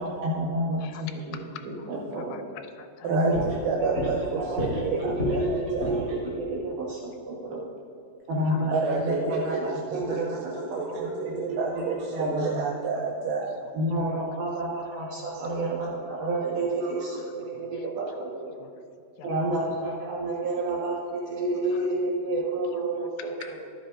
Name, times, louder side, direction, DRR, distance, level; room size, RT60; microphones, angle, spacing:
voice 1, 0.0-1.4 1.6-2.3 3.1-3.4 3.8-4.0 4.3-4.6 4.9-7.6 8.3-12.5 13.7-18.5 19.2-23.3, right 1 dB, 65° right, -6 dB, 2.9 m, -30 dB
voice 2, 0.8-3.5 7.4-7.5 8.5-8.7 14.1-14.2 15.4-15.5 17.5-17.7 18.6-18.7 19.2-19.5 21.8-21.9 23.2-23.6, left 9 dB, 90° left, 8 dB, 3.2 m, -45 dB
voice 3, 3.0-6.2 8.7-13.6 15.3-15.4 16.8-17.2, right 4 dB, 80° right, -1 dB, 3.0 m, -30 dB
sound 1, 3.3-6.2, left 1 dB, 20° right, 1.9 m, -33 dB
12.5 x 11.5 x 2.6 m, 2.5 s
omnidirectional pair, 5.6 m